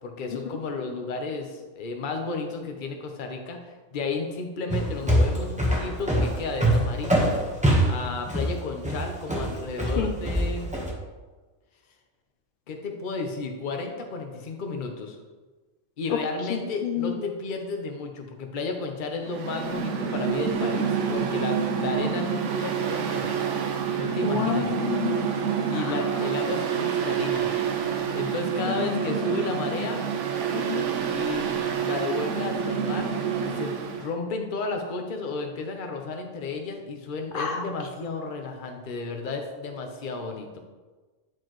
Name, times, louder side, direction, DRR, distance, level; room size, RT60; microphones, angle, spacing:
voice 1, 0.0-7.3 7.9-10.7 12.7-15.2 16.0-23.3 24.0-24.7 25.7-27.5 28.1-30.0 31.1-40.6, left 3 dB, 45° left, 3 dB, 0.8 m, -33 dB
sound 1, 4.7-10.9, right 1 dB, 5° right, 0.9 m, -23 dB
voice 2, 16.5-17.1 24.2-25.3 25.7-26.1 28.6-29.0 30.5-30.9 37.3-37.6, left 8 dB, 70° left, 5 dB, 0.5 m, -30 dB
Mechanical fan, 19.2-34.1, right 7 dB, 65° right, 1.0 m, -27 dB
9.9 x 4.6 x 3.0 m, 1.3 s
omnidirectional pair, 1.4 m